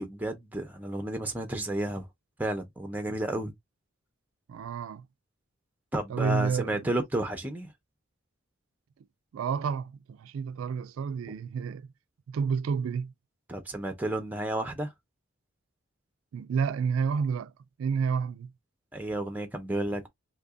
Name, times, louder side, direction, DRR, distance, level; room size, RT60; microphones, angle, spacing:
voice 1, 0.0-2.1 2.4-3.5 5.9-7.7 11.3-11.4 13.5-14.9 18.9-20.1, right 1 dB, 10° right, 0.7 m, -32 dB
voice 2, 4.5-5.1 6.1-6.8 9.3-11.9 12.3-13.1 16.3-17.5 17.8-18.5, right 6 dB, 85° right, 0.3 m, -30 dB
2.8 x 2.6 x 3.5 m
head